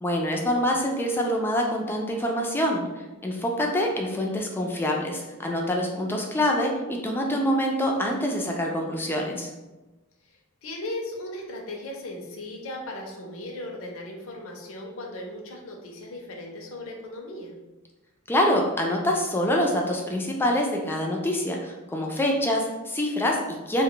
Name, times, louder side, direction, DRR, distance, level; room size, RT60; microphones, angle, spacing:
voice 1, 0.0-2.9 3.2-9.5 18.3-23.8, left 1 dB, 10° left, 0 dB, 0.3 m, -25 dB
voice 2, 10.2-17.5, left 1 dB, 65° left, 0 dB, 0.5 m, -37 dB
2.2 x 2.1 x 3.7 m, 1.1 s
head